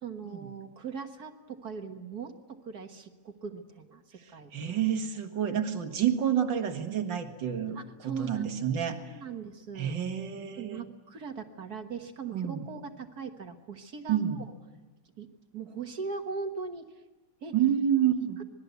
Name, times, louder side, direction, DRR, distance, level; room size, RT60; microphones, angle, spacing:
voice 1, 0.0-4.5 7.7-8.6 8.9-9.9 10.6-14.5 15.2-15.3 15.5-16.9 17.4-17.5, right 5 dB, 60° right, 6 dB, 1.9 m, -40 dB
voice 2, 4.5-9.0 9.8-10.9 12.3-12.6 14.1-14.4 17.5-18.4, right 9 dB, 85° right, 6 dB, 2.4 m, -29 dB
26.5 x 20.5 x 8.2 m, 1.2 s
omnidirectional pair, 2.0 m